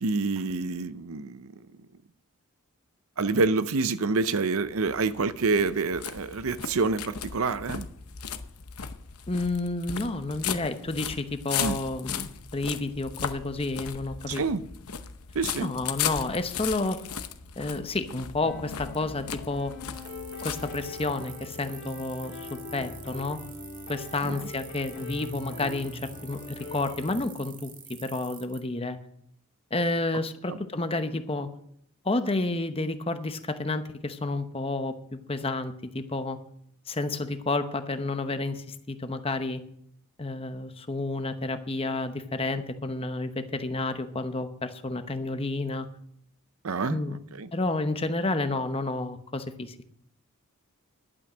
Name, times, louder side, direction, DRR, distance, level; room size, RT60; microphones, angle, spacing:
voice 1, 0.0-1.5 3.2-7.9 11.6-11.8 14.3-14.6 15.3-15.7 24.2-24.5 30.5-30.6 46.6-47.0 47.3-47.5, right 4 dB, 70° right, 0.6 m, -27 dB
sound 1, 4.7-21.2, left 8 dB, 80° left, 0.8 m, -37 dB
voice 2, 9.3-14.4 15.6-17.0 17.6-19.7 20.4-23.4 23.9-27.7 28.0-29.0 29.7-31.5 32.0-35.0 35.3-36.4 36.9-39.6 40.2-45.9 46.9-47.2 47.5-49.9, left 2 dB, 25° left, 0.8 m, -30 dB
sound 2, 18.4-27.2, left 3 dB, 55° left, 2.2 m, -41 dB
sound 3, 19.9-28.6, right 7 dB, 35° right, 1.7 m, -47 dB
11.5 x 8.8 x 6.1 m
head